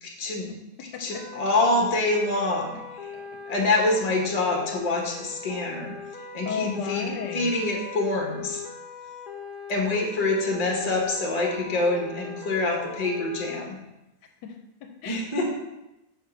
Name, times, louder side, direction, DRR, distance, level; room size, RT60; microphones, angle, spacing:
voice 1, 0.0-0.5 1.0-2.8 3.5-6.0 6.3-8.6 9.7-13.8 15.1-15.6, left 2 dB, 25° left, 0 dB, 1.0 m, -26 dB
voice 2, 0.9-1.4 3.1-3.3 6.4-7.5 14.4-15.4, left 6 dB, 75° left, 5 dB, 1.2 m, -35 dB
sound 1, 1.1-13.6, left 6 dB, 50° left, 0.6 m, -40 dB
5.9 x 3.6 x 5.9 m, 0.92 s
omnidirectional pair, 1.9 m